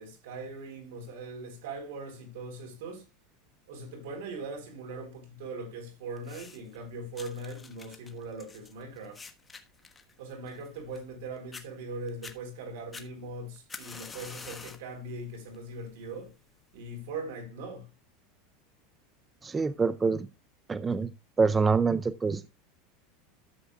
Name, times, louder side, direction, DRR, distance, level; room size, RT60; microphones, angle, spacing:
voice 1, 0.0-3.0 3.7-9.2 10.2-16.3 16.7-17.9, right 2 dB, 75° right, 3.9 m, -40 dB
sound 1, 6.2-6.8 7.2-11.2 11.5-11.7 12.1-12.4 12.9-14.9 15.3-15.7 16.5-16.6, left 4 dB, 15° left, 1.2 m, -46 dB
voice 2, 19.4-20.3 20.7-21.1 21.4-22.4, right 4 dB, 15° right, 0.5 m, -25 dB
13.0 x 7.6 x 2.3 m
supercardioid pair, 140°, 0 cm